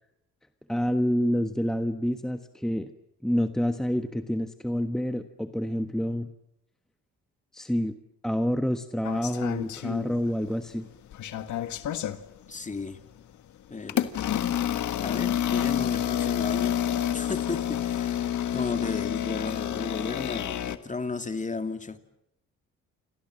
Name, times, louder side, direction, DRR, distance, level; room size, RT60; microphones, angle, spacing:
voice 1, 0.7-2.9 3.2-6.3 7.5-7.9 8.2-10.9, equal, ahead, 8 dB, 1.4 m, -28 dB
sound 1, 9.0-10.5 10.9-12.2 12.9-13.1 13.9-20.8, left 10 dB, 75° left, 1.8 m, -29 dB
voice 2, 12.5-13.0 13.7-14.1 15.0-16.8 17.1-22.0, left 3 dB, 25° left, 8 dB, 2.5 m, -34 dB
28.5 x 26.5 x 7.6 m, 0.80 s
cardioid pair, 90°, 30 cm